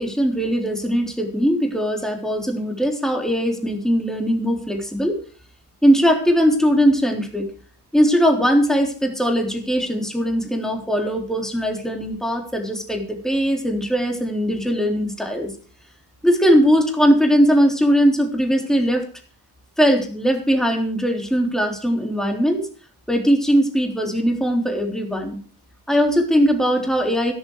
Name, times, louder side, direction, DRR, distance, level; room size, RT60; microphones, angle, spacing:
voice 1, 0.0-5.2 5.8-7.5 7.9-15.5 16.2-19.1 19.8-22.7 23.1-25.4 25.9-27.3, equal, ahead, 2 dB, 3.7 m, -20 dB
13.0 x 11.0 x 4.9 m, 0.40 s
cardioid pair, 90°, 39 cm